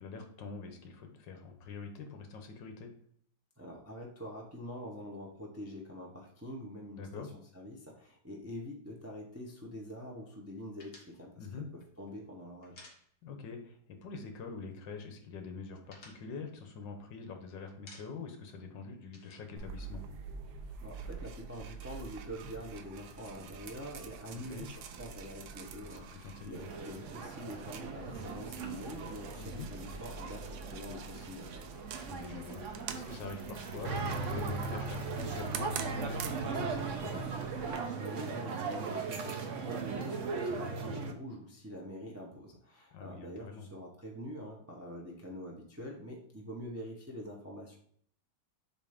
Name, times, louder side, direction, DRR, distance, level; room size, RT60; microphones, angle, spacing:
voice 1, 0.0-2.9 7.0-7.3 11.4-11.7 13.2-20.0 24.3-24.7 25.8-26.7 29.4-29.7 32.0-37.3 40.7-41.1 42.9-43.7, left 4 dB, 75° left, 5 dB, 1.6 m, -45 dB
voice 2, 3.6-12.8 20.8-31.6 37.7-47.8, equal, 15° right, -1 dB, 0.5 m, -45 dB
sound 1, 10.8-13.6 13.8-14.0 14.3-15.0 15.3-17.3 17.7-18.4 18.7-20.5, left 2 dB, 40° left, 1.5 m, -57 dB
sound 2, 19.6-37.8, right 5 dB, 90° right, 1.4 m, -46 dB
sound 3, 26.5-41.1, right 4 dB, 60° right, 0.8 m, -38 dB
7.3 x 2.7 x 5.0 m, 0.63 s
omnidirectional pair, 2.0 m